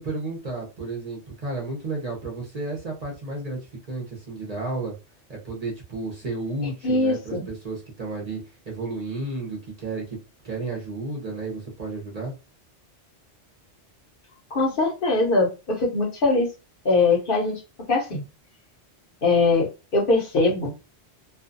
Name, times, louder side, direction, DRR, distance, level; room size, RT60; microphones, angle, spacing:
voice 1, 0.0-4.9 5.3-10.2 10.4-12.3, right 3 dB, 40° right, -2 dB, 0.7 m, -32 dB
voice 2, 6.8-7.5 14.5-16.5 16.8-17.6 17.9-18.2 19.2-20.8, left 3 dB, 55° left, -1 dB, 0.9 m, -22 dB
2.5 x 2.2 x 2.5 m, 0.30 s
omnidirectional pair, 1.2 m